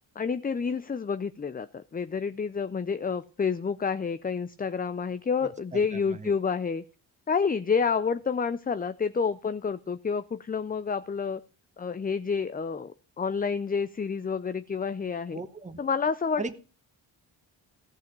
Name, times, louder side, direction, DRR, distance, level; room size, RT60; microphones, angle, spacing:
voice 1, 0.2-6.8 7.3-11.4 11.8-15.4 15.8-16.5, left 5 dB, 20° left, 13 dB, 0.4 m, -29 dB
voice 2, 5.7-6.3 15.3-15.8 16.4-16.5, right 3 dB, 15° right, 8 dB, 1.0 m, -37 dB
14.5 x 5.7 x 6.0 m, 0.36 s
cardioid pair, 55°, 45 cm